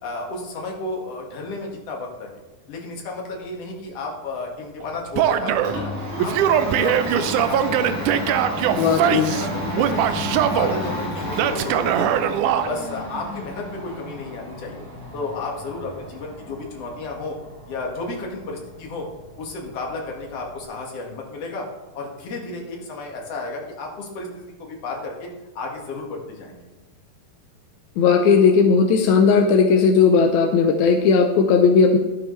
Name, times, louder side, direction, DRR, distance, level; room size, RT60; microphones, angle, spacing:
voice 1, 0.0-2.3 2.7-5.9 6.2-10.2 10.5-12.2 12.5-14.8 15.1-17.4 17.7-19.1 19.4-21.7 21.9-25.3 25.6-26.6, left 3 dB, 50° left, -1 dB, 2.4 m, -32 dB
Domestic sounds home sounds, 4.8-20.6, equal, 55° right, 4.3 m, -32 dB
Male speech man speaking / Yell, 5.2-5.8 6.2-9.5 9.8-10.7 11.4-12.7, right 10 dB, 85° right, 1.8 m, -21 dB
voice 2, 8.8-9.3 28.0-32.0, left 5 dB, 80° left, 4 dB, 1.7 m, -16 dB
12.0 x 9.0 x 3.2 m, 1.2 s
omnidirectional pair, 4.2 m